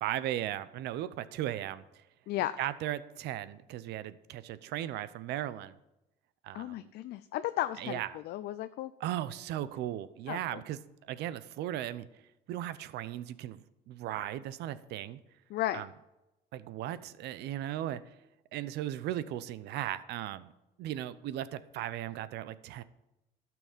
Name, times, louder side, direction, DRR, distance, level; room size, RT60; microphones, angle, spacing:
voice 1, 0.0-2.0 2.6-5.7 6.4-6.9 7.8-8.2 9.0-12.1 12.5-13.6 13.9-15.2 15.7-15.9 16.5-18.0 18.5-20.5 20.8-22.8, right 12 dB, 80° right, 15 dB, 0.7 m, -37 dB
voice 2, 6.5-8.0 8.3-8.9 10.3-10.6 15.5-15.8, left 14 dB, 75° left, 11 dB, 0.5 m, -34 dB
12.5 x 6.0 x 7.3 m, 0.96 s
cardioid pair, 110°, 17 cm